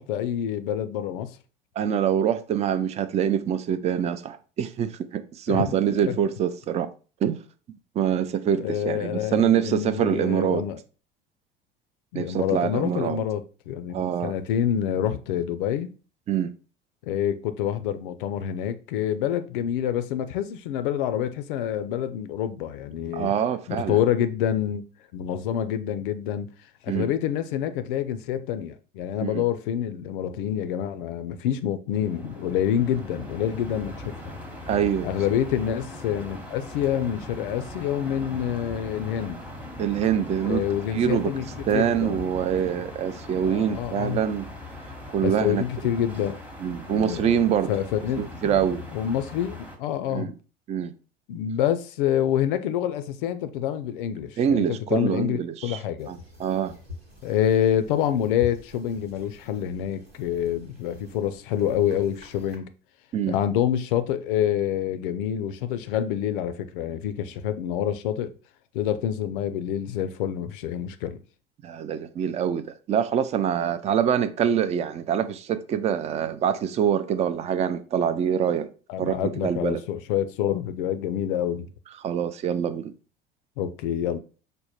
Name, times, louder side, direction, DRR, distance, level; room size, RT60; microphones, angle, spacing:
voice 1, 0.0-1.4 5.5-5.8 6.1-6.2 8.6-10.8 12.1-14.0 14.2-15.9 17.0-23.3 23.7-24.8 25.1-26.5 26.8-34.1 35.0-39.4 40.4-41.4 41.7-42.2 43.4-44.2 45.2-46.4 46.9-48.3 48.9-50.3 51.3-56.1 57.2-62.7 63.3-68.3 68.7-71.2 78.9-81.7 83.6-84.2, left 10 dB, 60° left, 0.5 m, -27 dB
voice 2, 1.8-6.9 7.2-7.4 8.0-10.7 12.1-13.2 13.9-14.3 16.3-16.5 23.1-24.0 26.9-27.1 29.2-29.4 34.7-35.1 39.8-40.6 40.9-41.3 41.7-44.5 45.1-45.6 46.6-47.7 48.2-48.9 50.1-50.3 50.7-50.9 54.4-55.8 56.1-56.8 63.1-63.4 71.6-78.7 79.0-79.8 82.0-82.9, right 9 dB, 25° right, 0.4 m, -25 dB
sound 1, 31.9-49.8, left 1 dB, 5° right, 0.9 m, -40 dB
sound 2, 56.0-62.6, left 3 dB, 85° right, 1.2 m, -46 dB
5.2 x 2.1 x 4.1 m
figure-of-eight pair, 65°, 29 cm